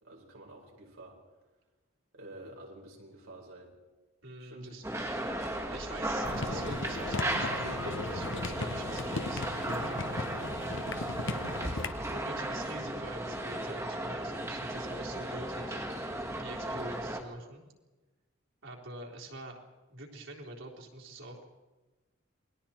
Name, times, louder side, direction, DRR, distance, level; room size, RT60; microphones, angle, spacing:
voice 1, 0.0-1.2 2.1-3.7 4.4-4.7 16.6-17.2, right 1 dB, 90° right, -1 dB, 4.9 m, -49 dB
voice 2, 4.2-4.8 5.7-10.6 12.0-15.8 16.4-17.7 18.6-19.6 19.9-21.5, right 2 dB, 70° right, -2 dB, 3.9 m, -45 dB
sound 1, 4.8-17.2, right 1 dB, 15° right, 1.6 m, -35 dB
sound 2, 6.2-11.9, left 3 dB, 65° left, 1.0 m, -37 dB
28.0 x 21.0 x 4.4 m, 1.2 s
head